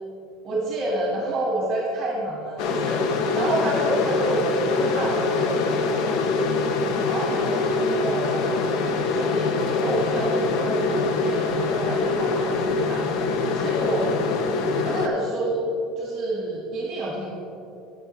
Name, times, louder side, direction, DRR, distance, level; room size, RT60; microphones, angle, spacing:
voice 1, 0.4-3.0 3.3-6.2 7.0-8.5 9.0-13.0 13.5-14.1 14.8-17.3, right 1 dB, 30° right, -4 dB, 1.7 m, -28 dB
sound 1, 2.6-15.1, left 3 dB, 55° left, 0.7 m, -24 dB
10.0 x 9.1 x 3.2 m, 2.7 s
cardioid pair, 150°, 0 cm